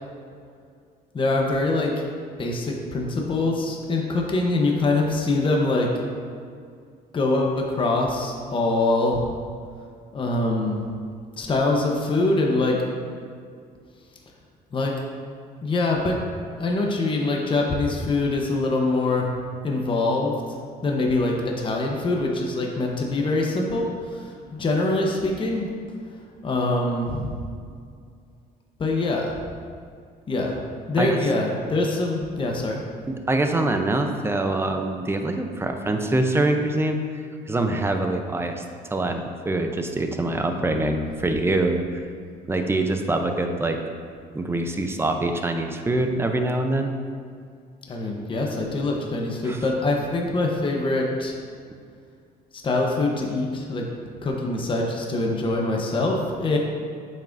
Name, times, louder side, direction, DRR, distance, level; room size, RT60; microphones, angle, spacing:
voice 1, 1.1-1.9 2.4-6.0 7.1-9.2 10.1-10.8 11.4-12.8 14.7-14.9 15.6-16.2 16.6-19.3 19.6-20.3 20.8-25.7 26.4-27.4 28.8-29.3 30.3-30.6 30.9-32.8 47.9-51.3 52.5-53.8 54.2-56.6, left 2 dB, 30° left, 0 dB, 1.0 m, -24 dB
voice 2, 33.1-37.0 37.5-38.6 38.9-42.0 42.5-43.8 44.3-46.9 49.4-49.6, right 2 dB, 15° right, 5 dB, 0.6 m, -24 dB
8.9 x 5.8 x 2.6 m, 2.2 s
cardioid pair, 110°, 17 cm